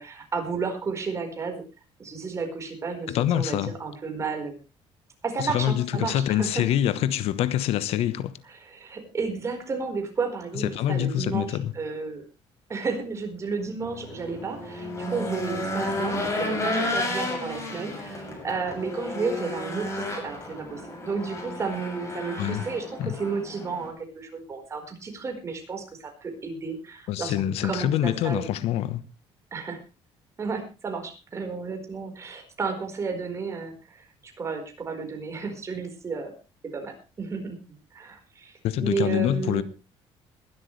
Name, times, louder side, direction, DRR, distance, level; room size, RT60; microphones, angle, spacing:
voice 1, 0.0-1.6 2.0-4.6 5.2-6.7 8.5-12.2 12.7-27.3 27.6-28.5 29.5-29.8 30.4-36.3 36.7-37.6 37.9-39.6, right 4 dB, 30° right, 4.6 m, -32 dB
voice 2, 3.1-3.7 5.4-8.4 10.6-11.7 22.4-22.6 23.0-23.1 27.1-29.0 38.6-39.6, left 11 dB, 75° left, 1.1 m, -25 dB
Race car auto racing / Engine, 13.8-23.9, left 1 dB, 25° left, 7.4 m, -32 dB
21.5 x 12.0 x 3.3 m
cardioid pair, 140°, 10 cm